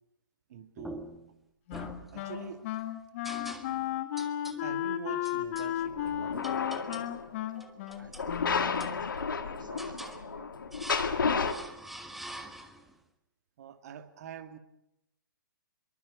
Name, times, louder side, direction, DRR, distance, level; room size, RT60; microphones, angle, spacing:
voice 1, 0.5-1.1 2.1-2.6 3.9-4.0 4.6-6.4 13.6-14.6, right 8 dB, 45° right, 8 dB, 2.2 m, -44 dB
sound 1, 0.8-1.3 1.7-2.6 3.2-3.9 4.2-4.6 5.2-5.7 6.4-7.2 7.6-8.3 8.8-9.4 9.8-10.2 10.7-11.2 11.4-12.9, right 1 dB, ahead, 1.6 m, -45 dB
Wind instrument woodwind instrument, 1.7-9.1, left 12 dB, 35° left, 2.0 m, -34 dB
sound 2, 5.9-7.3 8.1-11.5, left 5 dB, 65° left, 2.1 m, -32 dB
voice 2, 8.8-10.5 11.0-11.7, right 3 dB, 65° right, 3 dB, 5.1 m, -51 dB
25.5 x 23.0 x 6.5 m, 0.85 s
figure-of-eight pair, 125°, 12 cm